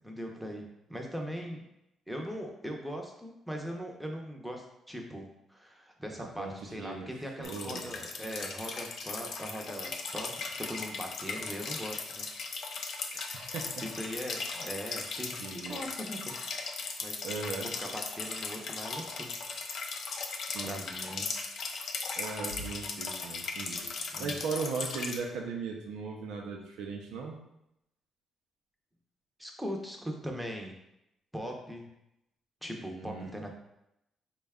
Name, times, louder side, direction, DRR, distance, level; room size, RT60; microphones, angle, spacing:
voice 1, 0.0-1.6 2.1-12.6 13.8-16.4 17.0-17.3 17.8-19.3 20.6-21.3 24.1-24.4 29.4-30.7 31.3-31.8 32.6-33.5, equal, ahead, 1 dB, 0.7 m, -40 dB
voice 2, 6.2-7.1 7.4-8.0 13.1-13.8 14.5-14.7 15.4-15.8 17.2-17.7 20.5-20.8 22.2-23.9 24.2-27.4 32.9-33.3, right 4 dB, 85° right, 1 dB, 0.5 m, -38 dB
sound 1, 7.4-25.2, left 4 dB, 65° left, 0.4 m, -38 dB
3.9 x 2.2 x 3.5 m, 0.84 s
cardioid pair, 90°, 0 cm